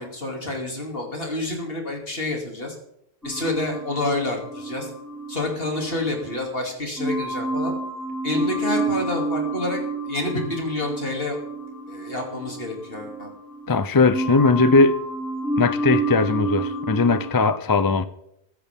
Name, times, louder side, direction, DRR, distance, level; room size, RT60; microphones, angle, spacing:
voice 1, 0.0-2.7 3.2-4.9 5.3-7.7 8.2-9.8 10.0-11.4 11.9-13.3, left 2 dB, 65° left, 3.0 m, -28 dB
sound 1, 3.2-6.5 7.0-13.8 14.1-17.3, right 2 dB, ahead, 4.3 m, -29 dB
voice 2, 13.7-15.0 15.6-18.1, left 4 dB, 30° left, 0.5 m, -19 dB
15.5 x 13.0 x 3.6 m
omnidirectional pair, 1.0 m